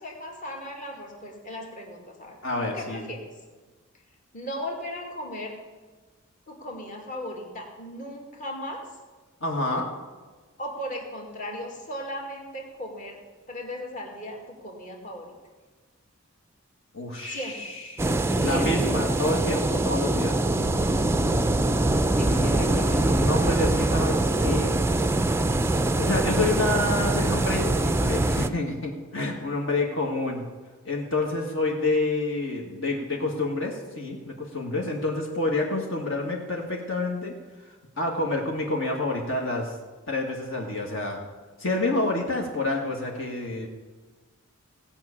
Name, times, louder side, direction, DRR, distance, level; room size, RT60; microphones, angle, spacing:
voice 1, 0.0-2.4 2.7-3.3 4.3-5.6 6.5-8.8 10.6-13.2 13.5-15.3 17.2-17.6 18.3-18.9 22.2-23.2, equal, 35° left, 0 dB, 2.1 m, -37 dB
voice 2, 2.4-3.1 9.4-9.9 16.9-18.1 18.4-20.4 22.2-24.7 25.9-30.4 30.9-37.3 38.0-39.7 40.1-41.2 41.6-43.7, left 2 dB, 60° left, 0 dB, 1.8 m, -28 dB
sound 1, 18.0-28.5, right 2 dB, 10° right, 0.4 m, -23 dB
sound 2, 20.4-27.7, right 4 dB, 90° left, 3.0 m, -42 dB
17.0 x 5.8 x 8.6 m, 1.3 s
head